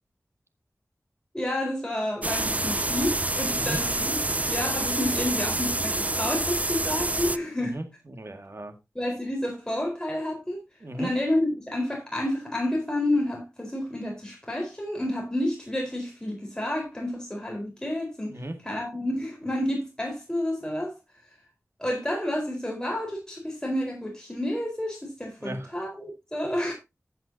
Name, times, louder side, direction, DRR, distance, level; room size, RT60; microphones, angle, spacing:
voice 1, 1.3-4.2 4.5-7.8 8.9-10.6 11.0-18.4 18.7-20.9 21.8-26.7, left 1 dB, 15° left, 4.3 m, -30 dB
sound 1, 2.2-7.4, right 2 dB, 25° right, 0.5 m, -27 dB
voice 2, 7.6-8.7 10.8-11.1 18.3-18.6 25.4-25.7, right 1 dB, 55° right, 2.0 m, -36 dB
14.5 x 8.0 x 2.8 m
wide cardioid pair, 60°, 5 cm